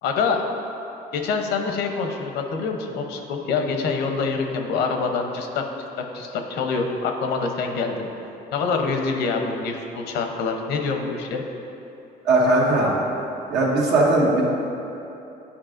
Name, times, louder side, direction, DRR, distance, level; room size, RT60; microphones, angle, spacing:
voice 1, 0.0-0.4 1.1-5.6 6.0-8.1 8.5-11.4, left 4 dB, 80° left, 4 dB, 0.7 m, -25 dB
voice 2, 12.2-12.9 13.5-14.4, right 2 dB, 85° right, -4 dB, 1.5 m, -18 dB
10.0 x 4.7 x 2.5 m, 2.9 s
cardioid pair, 110°, 17 cm